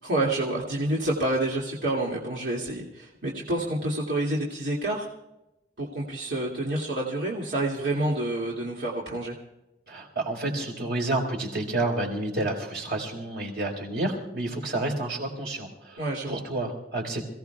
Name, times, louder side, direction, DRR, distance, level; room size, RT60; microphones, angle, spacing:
voice 1, 0.0-5.1 5.8-9.4 16.0-16.4, right 1 dB, 85° right, -4 dB, 2.4 m, -28 dB
voice 2, 9.9-17.3, right 2 dB, 60° right, 1 dB, 4.4 m, -30 dB
27.5 x 17.0 x 2.3 m, 0.92 s
head